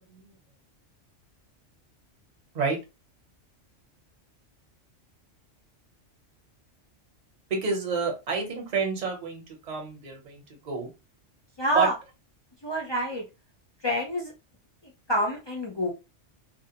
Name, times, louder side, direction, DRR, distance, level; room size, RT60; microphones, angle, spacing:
voice 1, 7.5-10.9 11.7-11.9, right 4 dB, 40° right, 2 dB, 0.8 m, -29 dB
voice 2, 11.6-11.9 12.6-13.3 13.8-14.3 14.8-15.9, equal, 40° left, -1 dB, 0.3 m, -27 dB
2.5 x 2.1 x 2.7 m, 0.26 s
omnidirectional pair, 1.3 m